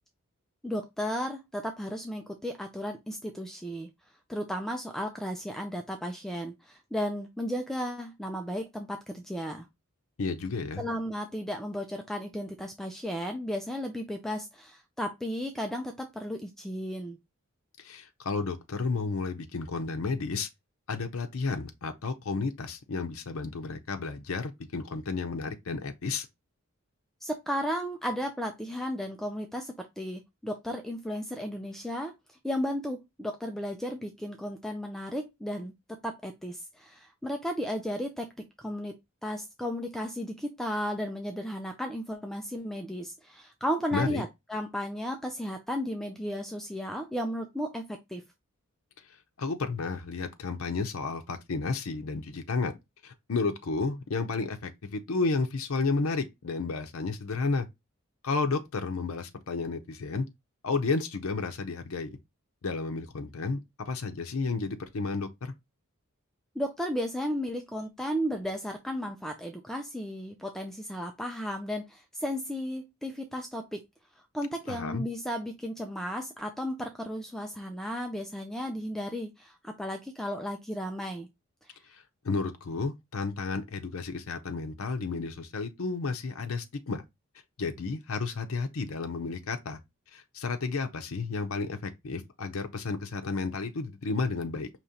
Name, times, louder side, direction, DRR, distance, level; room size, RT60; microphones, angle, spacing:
voice 1, 0.6-3.9 4.3-9.7 10.8-17.2 27.2-35.7 36.0-38.3 38.6-39.0 39.2-48.2 66.6-73.8 74.3-81.3 81.7-81.8, equal, ahead, 0.4 m, -34 dB
voice 2, 10.2-10.8 17.8-20.5 20.9-26.3 43.9-44.2 49.4-52.7 53.0-57.7 58.2-60.3 60.6-62.2 62.6-65.5 74.7-75.1 81.9-87.0 87.6-89.8 90.1-94.7, left 4 dB, 75° left, 0.6 m, -32 dB
5.0 x 3.0 x 2.8 m
head